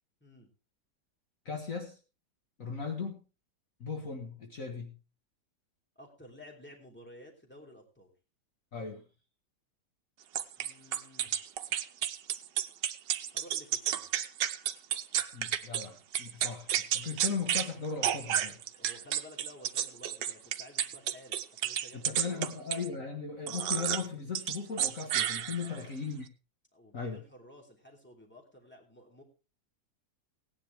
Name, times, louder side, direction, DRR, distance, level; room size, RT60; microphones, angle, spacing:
voice 1, 1.5-2.0 2.6-3.2 3.8-4.9 8.7-9.0 15.3-18.6 21.9-26.3 26.9-27.2, left 5 dB, 50° left, 3 dB, 1.9 m, -37 dB
voice 2, 5.9-8.1 10.6-11.4 13.3-14.1 18.8-22.5 25.6-26.0 26.7-29.2, left 1 dB, 5° left, 1 dB, 3.0 m, -53 dB
sound 1, 10.4-15.9 16.1-17.7 18.0-22.9 23.5-24.1 24.4-25.8, right 10 dB, 80° right, 1.4 m, -31 dB
17.5 x 10.0 x 3.4 m, 0.30 s
omnidirectional pair, 1.9 m